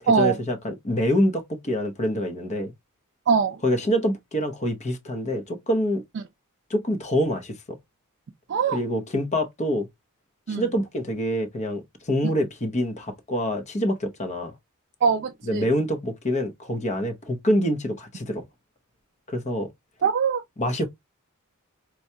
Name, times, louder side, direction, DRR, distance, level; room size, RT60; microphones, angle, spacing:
voice 1, 0.0-2.7 3.6-6.0 6.7-7.8 8.7-9.9 10.5-14.5 15.4-18.4 19.3-19.7 20.6-20.9, equal, 30° left, 0.7 m, -26 dB
voice 2, 3.3-3.6 8.5-8.8 10.5-10.6 15.0-15.6 20.0-20.4, right 6 dB, 50° right, 0.4 m, -22 dB
4.4 x 2.3 x 2.7 m
head